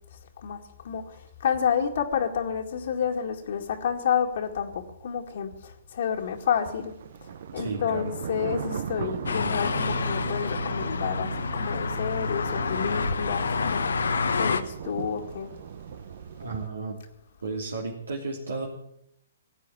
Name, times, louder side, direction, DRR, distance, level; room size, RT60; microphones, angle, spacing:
voice 1, 0.8-6.9 7.5-13.8 14.4-15.5, left 8 dB, 60° left, 2.1 m, -29 dB
sound 1, 6.4-16.7, right 8 dB, 60° right, 0.9 m, -38 dB
voice 2, 7.5-8.1 16.4-17.0 17.4-18.7, right 3 dB, 80° right, 2.8 m, -33 dB
sound 2, 9.3-14.6, left 4 dB, 75° left, 1.1 m, -28 dB
16.5 x 8.4 x 8.7 m
hypercardioid pair, 130°, 0 cm